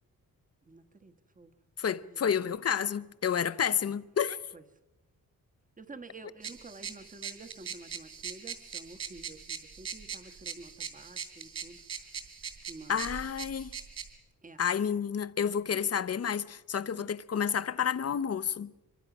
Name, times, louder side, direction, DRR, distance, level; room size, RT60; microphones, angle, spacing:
voice 1, 0.6-1.5 2.0-2.3 4.5-4.6 5.8-11.8 12.7-13.1 14.4-14.6 16.9-17.1, right 3 dB, 25° right, 1.3 m, -50 dB
voice 2, 1.8-4.4 12.9-13.8 14.6-18.7, left 7 dB, 45° left, 0.7 m, -30 dB
sound 1, 6.4-14.1, right 7 dB, 45° right, 3.3 m, -42 dB
25.0 x 23.5 x 6.0 m
wide cardioid pair, 155°, 35 cm